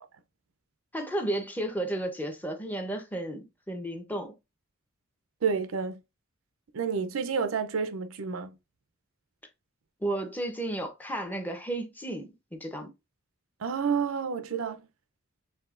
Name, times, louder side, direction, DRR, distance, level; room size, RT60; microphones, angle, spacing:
voice 1, 0.9-4.3 10.0-12.9, right 1 dB, 10° left, 0.8 m, -33 dB
voice 2, 5.4-6.0 6.7-8.5 13.6-14.8, right 6 dB, 75° right, 0.5 m, -29 dB
6.6 x 2.7 x 2.5 m
head